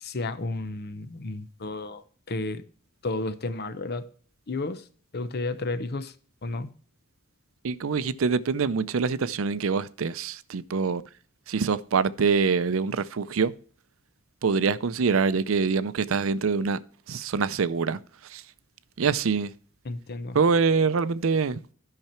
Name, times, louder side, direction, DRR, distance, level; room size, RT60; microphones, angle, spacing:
voice 1, 0.0-2.6 3.0-4.1 4.5-4.8 5.1-6.1 6.4-6.7 19.8-20.4, left 2 dB, 50° left, 0.8 m, -32 dB
voice 2, 7.6-11.0 11.5-13.5 14.4-16.8 17.1-18.0 18.3-18.4 19.0-19.5 20.3-21.6, right 5 dB, 80° right, 0.5 m, -25 dB
12.0 x 5.8 x 4.4 m
head